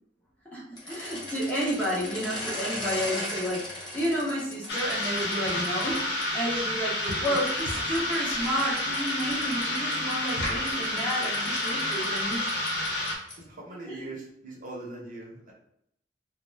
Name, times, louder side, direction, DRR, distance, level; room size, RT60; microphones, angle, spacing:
voice 1, 0.5-6.0 6.3-12.4 13.9-14.0, equal, 10° left, -6 dB, 0.5 m, -31 dB
sound 1, 0.7-6.2 7.0-13.5, left 1 dB, 25° left, 0.9 m, -39 dB
sound 2, 4.7-13.2, left 1 dB, 65° left, 0.5 m, -29 dB
voice 2, 13.4-15.5, right 1 dB, 45° right, -3 dB, 0.7 m, -40 dB
2.3 x 2.0 x 3.2 m, 0.73 s
head